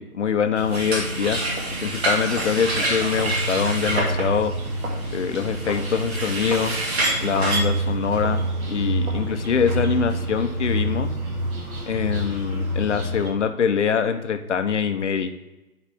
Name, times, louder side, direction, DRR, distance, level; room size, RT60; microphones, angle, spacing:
voice 1, 0.0-1.4 1.8-4.5 5.1-6.7 7.2-11.1 11.9-15.3, left 6 dB, 50° left, 8 dB, 0.7 m, -24 dB
sound 1, 0.5-13.3, right 1 dB, 65° right, 2.2 m, -28 dB
sound 2, 0.7-7.6, right 2 dB, 40° right, 1.6 m, -27 dB
10.5 x 4.1 x 3.4 m, 1.0 s
hypercardioid pair, 155°, 47 cm